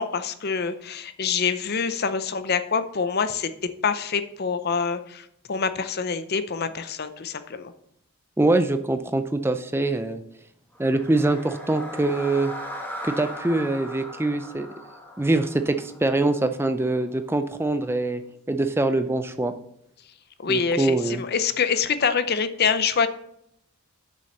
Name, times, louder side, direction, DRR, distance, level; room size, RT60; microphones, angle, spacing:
voice 1, 0.0-3.5 3.8-7.7 20.4-23.1, left 6 dB, 45° left, 11 dB, 0.6 m, -25 dB
voice 2, 8.4-10.2 10.8-12.5 13.0-14.7 15.2-18.2 18.5-19.5 20.5-21.2, right 2 dB, 10° right, 9 dB, 0.4 m, -24 dB
sound 1, 10.7-16.9, equal, 10° left, 1.5 m, -38 dB
6.8 x 6.4 x 6.5 m, 0.77 s
head